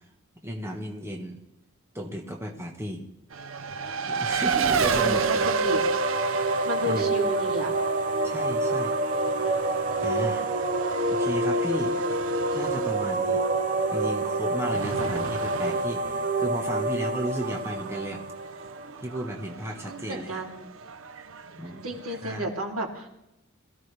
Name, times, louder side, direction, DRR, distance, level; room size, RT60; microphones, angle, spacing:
voice 1, 0.4-1.4 1.9-3.0 4.0-5.5 6.8-7.1 8.2-8.9 10.0-10.4 11.1-11.9 12.5-13.4 13.9-18.2 19.0-20.3 21.6-21.9 22.2-22.5, equal, 10° right, 1 dB, 1.4 m, -34 dB
Race car auto racing, 3.3-22.4, right 5 dB, 70° right, 0.7 m, -32 dB
sound 1, 4.5-19.2, right 2 dB, 40° right, 0.8 m, -28 dB
voice 2, 4.6-5.8 6.5-7.7 14.8-15.0 19.8-20.7 21.8-23.1, right 1 dB, 85° right, 0 dB, 3.0 m, -33 dB
22.0 x 14.5 x 3.4 m, 0.87 s
head